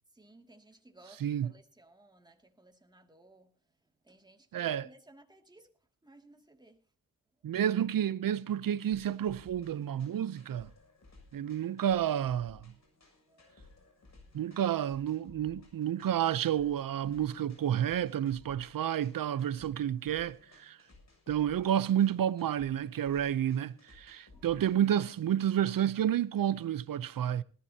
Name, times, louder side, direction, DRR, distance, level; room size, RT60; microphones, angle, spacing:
voice 1, 0.1-3.5 4.0-5.7 6.0-6.8 13.3-13.5 24.3-24.6, right 2 dB, 10° right, 2.5 m, -59 dB
voice 2, 1.2-1.5 4.5-4.9 7.4-10.7 11.3-12.7 14.3-20.8 21.3-27.4, right 10 dB, 70° right, 0.8 m, -30 dB
sound 1, 8.8-25.5, left 3 dB, 50° left, 7.1 m, -59 dB
19.5 x 14.5 x 2.9 m
cardioid pair, 70°, 35 cm